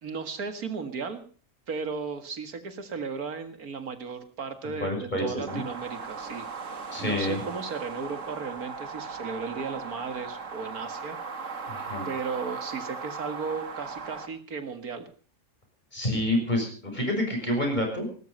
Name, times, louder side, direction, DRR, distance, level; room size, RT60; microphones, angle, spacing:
voice 1, 0.0-1.2 1.7-6.5 6.7-11.6 12.1-15.1, right 5 dB, 85° right, 8 dB, 2.3 m, -35 dB
voice 2, 4.7-5.6 6.9-7.4 11.7-12.1 15.9-18.1, left 1 dB, 30° left, 2 dB, 6.6 m, -28 dB
sound 1, 5.5-14.3, right 5 dB, 60° right, 2.0 m, -38 dB
19.0 x 13.5 x 5.4 m, 0.42 s
omnidirectional pair, 1.5 m